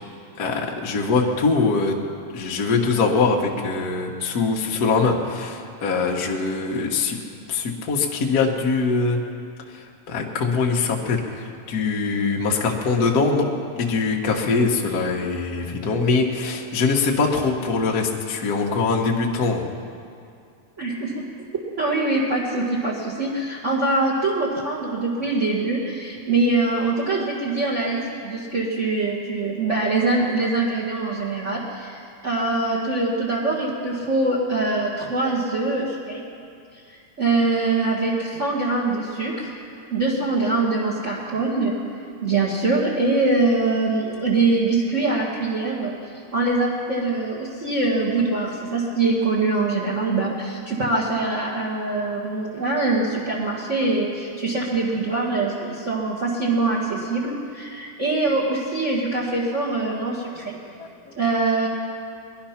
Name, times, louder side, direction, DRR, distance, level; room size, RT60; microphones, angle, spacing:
voice 1, 0.4-1.9 2.3-7.2 7.5-9.2 9.7-13.5 13.8-19.6 60.8-61.1, left 4 dB, 50° left, 0 dB, 1.1 m, -22 dB
voice 2, 20.8-21.2 21.8-36.2 36.9-39.5 39.9-41.7 42.2-45.9 46.3-60.5 61.2-61.7, right 3 dB, 35° right, -4 dB, 1.2 m, -23 dB
20.0 x 12.0 x 5.8 m, 2.4 s
omnidirectional pair, 3.7 m